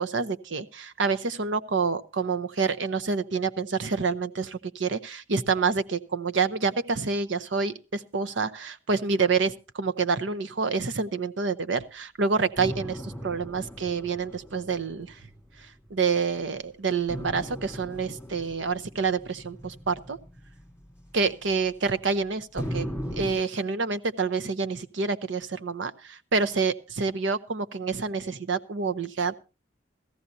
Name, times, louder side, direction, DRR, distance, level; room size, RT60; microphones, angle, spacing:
voice 1, 0.0-15.1 15.9-20.2 21.1-22.9 23.1-29.3, right 4 dB, 80° right, 12 dB, 0.8 m, -27 dB
sound 1, 12.6-16.2 17.1-22.1 22.6-23.3, equal, 5° right, 3.1 m, -38 dB
17.0 x 14.0 x 2.7 m, 0.31 s
head